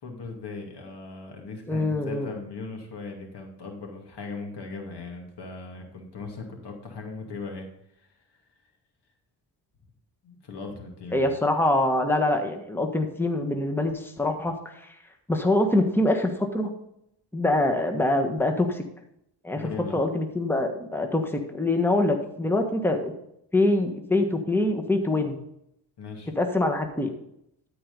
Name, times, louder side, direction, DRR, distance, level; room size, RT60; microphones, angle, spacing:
voice 1, 0.0-7.7 8.0-8.1 10.2-11.3 19.5-20.0 26.0-26.3, left 4 dB, 65° left, 2 dB, 2.5 m, -38 dB
voice 2, 1.7-2.3 11.1-14.9 15.3-16.7 17.3-18.8 19.4-19.6 19.9-23.1 23.5-25.4 26.4-27.1, left 2 dB, 5° left, 4 dB, 1.4 m, -24 dB
13.5 x 4.8 x 5.4 m, 0.77 s
cardioid pair, 60°, 42 cm